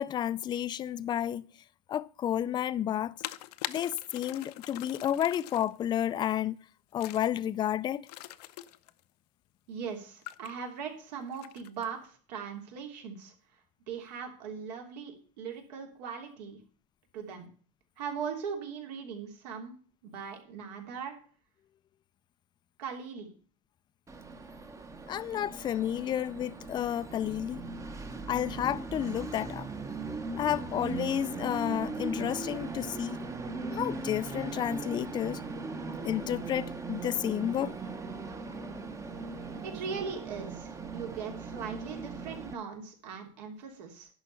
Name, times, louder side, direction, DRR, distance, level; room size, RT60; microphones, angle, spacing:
voice 1, 0.0-1.5 1.9-3.1 3.7-6.6 6.9-8.1 25.1-27.7 28.3-29.7 30.4-33.2 33.7-35.4 36.0-37.8, left 11 dB, 20° left, 0.4 m, -31 dB
sound 1, 3.2-5.8 7.0-7.3 8.0-9.0 10.2-10.5 11.3-11.9, left 16 dB, 70° left, 0.7 m, -42 dB
voice 2, 9.7-13.3 13.9-16.6 17.1-17.5 18.0-19.7 20.0-21.2 22.8-23.3 39.6-44.1, right 6 dB, 80° right, 3.1 m, -39 dB
Train, 24.1-42.5, right 3 dB, 15° right, 0.8 m, -39 dB
11.0 x 5.2 x 6.8 m
supercardioid pair, 130°, 21 cm